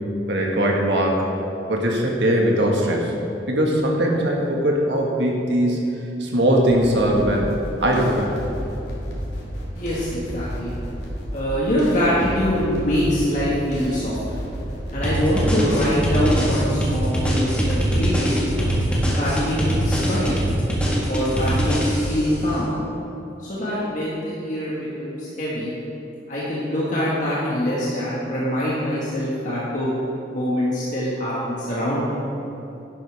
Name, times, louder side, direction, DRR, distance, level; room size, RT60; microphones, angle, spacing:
voice 1, 0.3-1.2 1.7-3.1 3.5-5.9 6.2-7.5 7.8-8.3, right 1 dB, 90° right, -1 dB, 1.7 m, -20 dB
sound 1, 6.6-17.0, equal, 65° left, 2.5 m, -32 dB
voice 2, 9.7-10.7 11.3-14.4 14.9-18.5 19.2-20.4 21.1-22.7 23.4-25.7 26.3-29.9 30.3-32.1, equal, 45° left, -8 dB, 1.7 m, -24 dB
sound 2, 15.0-22.3, equal, 5° left, 1.6 m, -22 dB
11.5 x 10.5 x 3.5 m, 2.9 s
head